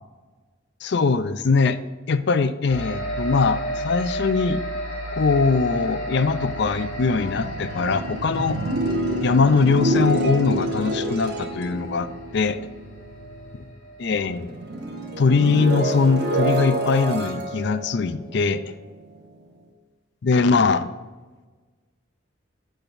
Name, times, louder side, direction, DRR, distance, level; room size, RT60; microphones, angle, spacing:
voice 1, 0.8-1.8 2.1-4.6 5.1-8.6 9.2-12.6 14.0-14.5 15.2-18.6 20.2-20.9, left 4 dB, 60° left, 12 dB, 0.4 m, -21 dB
sound 1, 2.7-14.5, equal, 90° left, 2.6 m, -34 dB
sound 2, 6.0-13.7 14.0-19.2, right 1 dB, 55° right, 1.2 m, -28 dB
10.0 x 7.0 x 2.6 m, 1.3 s
head